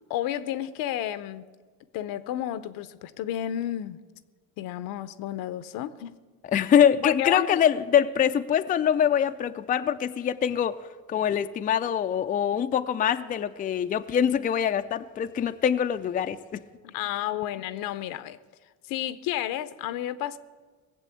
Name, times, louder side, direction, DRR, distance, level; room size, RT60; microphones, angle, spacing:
voice 1, 0.1-1.5 1.9-4.0 4.6-6.1 7.0-7.6 16.8-18.4 18.8-20.4, left 12 dB, 75° left, 0.8 m, -31 dB
voice 2, 6.5-10.8 11.1-16.6, left 9 dB, 25° left, 0.4 m, -24 dB
18.5 x 7.5 x 8.4 m
cardioid pair, 120°, 35 cm